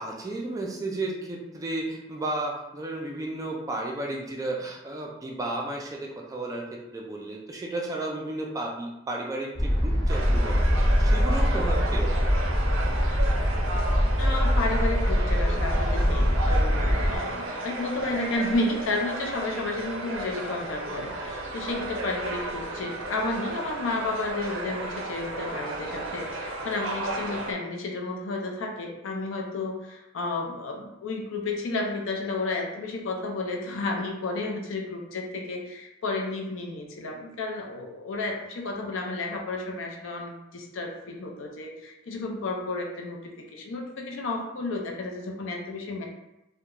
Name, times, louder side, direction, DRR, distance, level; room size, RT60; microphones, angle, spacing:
voice 1, 0.0-12.3, right 2 dB, 15° right, -1 dB, 0.3 m, -33 dB
sound 1, 9.6-17.2, equal, 30° left, 0.7 m, -23 dB
sound 2, 10.1-27.5, right 1 dB, 85° right, 0.4 m, -34 dB
voice 2, 14.2-43.2 43.5-46.1, left 2 dB, 70° left, 1 dB, 0.5 m, -32 dB
2.3 x 2.1 x 2.8 m, 0.93 s
head